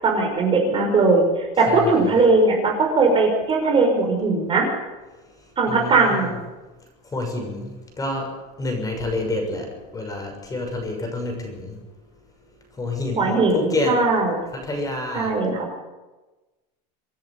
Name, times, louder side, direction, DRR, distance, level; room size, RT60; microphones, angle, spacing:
voice 1, 0.0-4.7 5.6-6.3 13.2-14.4 15.1-15.7, right 3 dB, 25° right, 1 dB, 5.5 m, -19 dB
voice 2, 1.7-2.2 5.7-6.3 7.1-7.7 8.0-8.3 8.6-11.8 12.8-14.0 14.5-15.3, left 2 dB, 15° left, 2 dB, 6.4 m, -28 dB
26.5 x 10.5 x 9.8 m, 1.2 s
supercardioid pair, 135°, 20 cm